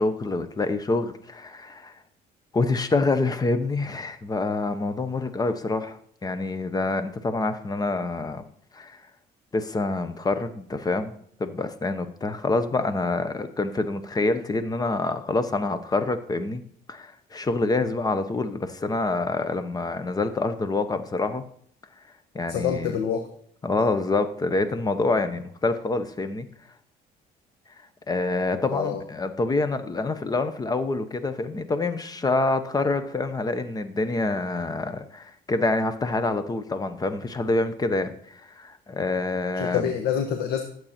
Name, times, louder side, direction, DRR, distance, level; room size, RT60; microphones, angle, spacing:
voice 1, 0.0-1.9 2.5-8.4 8.7-9.0 9.5-11.1 11.4-16.6 16.9-21.4 22.3-22.9 23.6-26.5 28.1-39.9, left 3 dB, 20° left, 10 dB, 1.0 m, -26 dB
voice 2, 22.5-23.3 28.7-29.0 39.5-40.6, left 8 dB, 80° left, 5 dB, 1.2 m, -26 dB
12.0 x 7.9 x 4.4 m, 0.64 s
cardioid pair, 110°, 17 cm